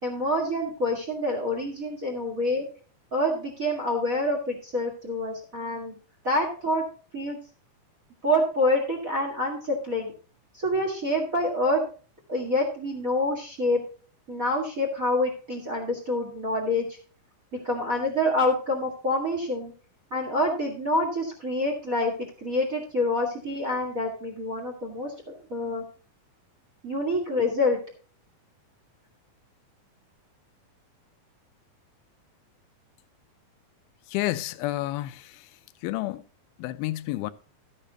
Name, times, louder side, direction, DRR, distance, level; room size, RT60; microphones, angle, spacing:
voice 1, 0.0-2.6 3.1-5.9 6.2-6.8 7.1-7.4 8.2-10.1 10.5-11.8 12.3-13.8 14.3-17.0 17.6-19.7 20.1-22.1 22.4-25.1 25.5-25.8 26.8-27.8, left 1 dB, 35° right, 1.6 m, -26 dB
voice 2, 34.1-35.5 35.8-36.3 36.6-37.3, left 16 dB, 90° left, 2.5 m, -30 dB
13.0 x 9.9 x 2.9 m
omnidirectional pair, 4.2 m